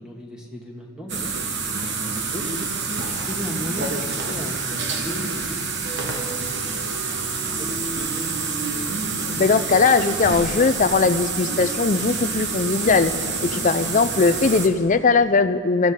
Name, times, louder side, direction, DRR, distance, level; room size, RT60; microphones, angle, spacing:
voice 1, 0.0-2.7 2.9-8.1 13.4-13.7, equal, 5° right, -1 dB, 1.7 m, -36 dB
sound 1, 1.1-14.7, right 4 dB, 55° right, 1.3 m, -27 dB
voice 2, 9.4-13.1 13.4-15.9, left 4 dB, 35° left, 12 dB, 0.5 m, -19 dB
24.5 x 14.5 x 3.8 m, 2.2 s
head